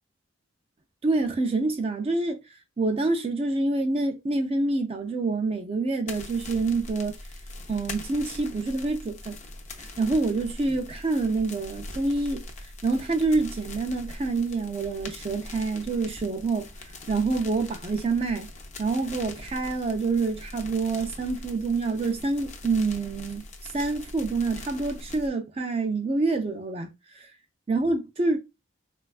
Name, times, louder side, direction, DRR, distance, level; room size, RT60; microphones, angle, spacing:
voice 1, 1.0-2.4 2.8-7.1 7.7-9.4 9.8-18.5 18.8-27.2 27.7-28.4, right 3 dB, 30° right, 0.3 m, -27 dB
sound 1, 6.1-25.3, left 2 dB, 35° left, 0.5 m, -42 dB
4.0 x 2.3 x 2.3 m
head